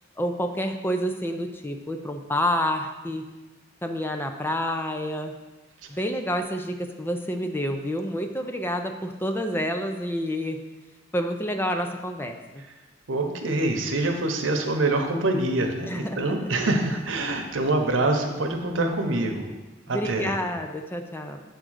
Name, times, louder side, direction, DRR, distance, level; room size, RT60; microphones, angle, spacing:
voice 1, 0.2-3.2 3.8-5.4 5.9-10.6 11.1-12.6 15.9-16.5 19.9-21.4, equal, 10° left, 5 dB, 0.5 m, -28 dB
voice 2, 13.1-19.5 19.9-20.4, right 2 dB, 85° right, 4 dB, 0.9 m, -25 dB
8.0 x 3.7 x 6.3 m, 1.2 s
head